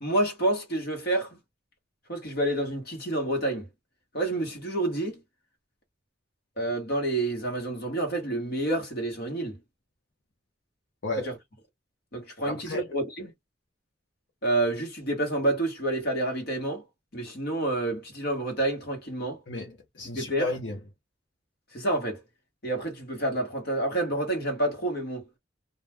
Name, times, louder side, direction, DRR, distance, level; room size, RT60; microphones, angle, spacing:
voice 1, 0.0-1.4 2.1-3.7 4.1-5.2 6.6-9.6 11.2-11.3 12.1-13.3 14.4-16.8 17.1-19.4 20.1-20.5 21.7-22.2 22.6-25.3, right 1 dB, 60° left, 1.3 m, -28 dB
voice 2, 12.5-12.9 19.5-20.8, left 2 dB, 80° left, 0.8 m, -33 dB
2.4 x 2.2 x 3.2 m
head